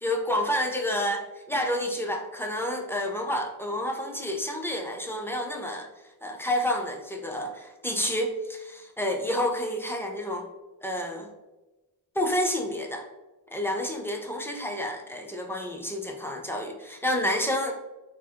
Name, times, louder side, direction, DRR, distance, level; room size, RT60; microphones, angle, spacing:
voice 1, 0.0-5.9 6.2-10.5 10.8-11.3 12.2-13.1 13.5-17.7, left 1 dB, 5° left, 1 dB, 0.4 m, -29 dB
3.4 x 2.0 x 2.7 m, 1.1 s
cardioid pair, 60°, 45 cm